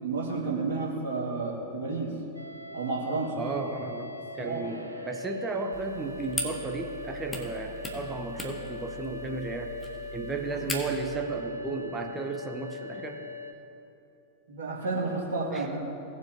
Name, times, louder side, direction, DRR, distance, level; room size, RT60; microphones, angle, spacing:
voice 1, 0.0-2.1 2.7-3.4 4.4-4.6 10.5-10.7 14.5-15.8, right 3 dB, 60° right, -4 dB, 2.2 m, -31 dB
sound 1, 2.3-13.5, left 4 dB, 85° right, 0.8 m, -40 dB
voice 2, 3.4-9.7 10.1-13.2 15.5-15.8, right 3 dB, 15° right, 4 dB, 0.9 m, -34 dB
sound 2, 5.7-11.1, equal, 15° left, 1.4 m, -39 dB
18.5 x 7.3 x 2.9 m, 2.9 s
figure-of-eight pair, 90°, 0 cm